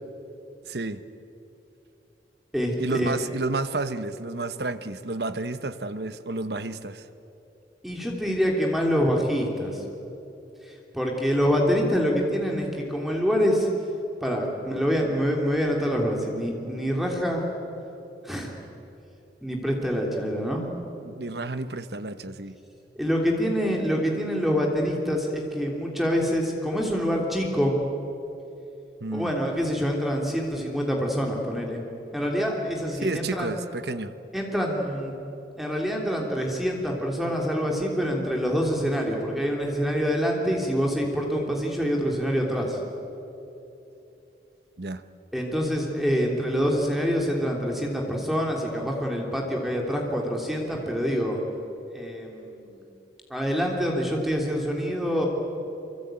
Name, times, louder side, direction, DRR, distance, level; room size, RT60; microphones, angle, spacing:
voice 1, 0.6-1.0 2.8-7.0 21.0-22.6 29.0-29.3 33.0-34.1 44.8-45.0, right 2 dB, 70° right, 12 dB, 1.1 m, -31 dB
voice 2, 2.5-3.2 7.8-9.8 10.9-13.7 14.2-17.4 18.2-18.5 19.4-20.7 23.0-27.8 29.1-31.8 32.1-33.5 34.3-35.1 35.6-42.8 45.3-51.4 51.9-52.8 53.3-55.3, equal, ahead, 0 dB, 3.0 m, -26 dB
25.0 x 24.5 x 9.0 m, 2.9 s
head